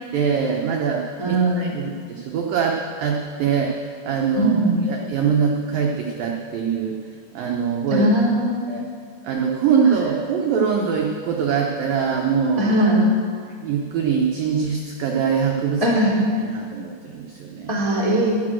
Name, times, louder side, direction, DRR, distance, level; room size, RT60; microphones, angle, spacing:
voice 1, 0.1-4.6 4.9-7.0 7.3-8.1 8.7-8.8 9.2-12.7 13.6-15.8 16.3-17.8, right 6 dB, 80° right, 0 dB, 2.0 m, -23 dB
voice 2, 1.2-1.7 4.3-4.8 7.9-8.8 12.6-13.1 15.8-16.2 17.7-18.3, right 1 dB, 15° left, -4 dB, 1.2 m, -20 dB
12.5 x 11.5 x 7.6 m, 2.1 s
omnidirectional pair, 5.5 m